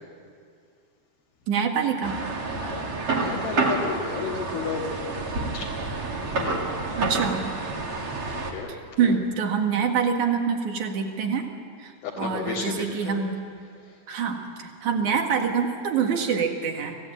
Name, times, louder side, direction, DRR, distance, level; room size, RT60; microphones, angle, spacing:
voice 1, 1.5-2.2 6.9-7.5 8.7-11.5 11.8-13.4 14.1-17.1, right 6 dB, 55° right, 4 dB, 2.8 m, -26 dB
sound 1, 2.0-8.5, right 3 dB, 40° right, 2.5 m, -29 dB
voice 2, 2.5-4.8 5.5-5.7 6.4-6.6 8.5-8.7 9.0-9.1 12.0-13.2, left 5 dB, 70° left, -4 dB, 3.9 m, -32 dB
25.5 x 17.0 x 8.8 m, 2.2 s
omnidirectional pair, 4.6 m